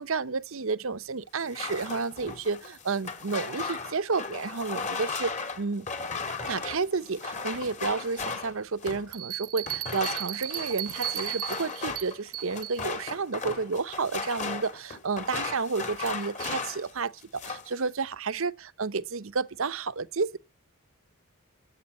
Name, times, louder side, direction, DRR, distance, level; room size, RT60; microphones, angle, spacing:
voice 1, 0.0-5.9 6.5-20.4, right 4 dB, 60° right, 0.7 m, -31 dB
sound 1, 1.4-9.1 9.6-16.9 17.2-17.8, left 4 dB, 30° left, 2.7 m, -36 dB
sound 2, 9.1-12.8, right 15 dB, 85° right, 0.9 m, -35 dB
13.0 x 8.3 x 9.6 m
head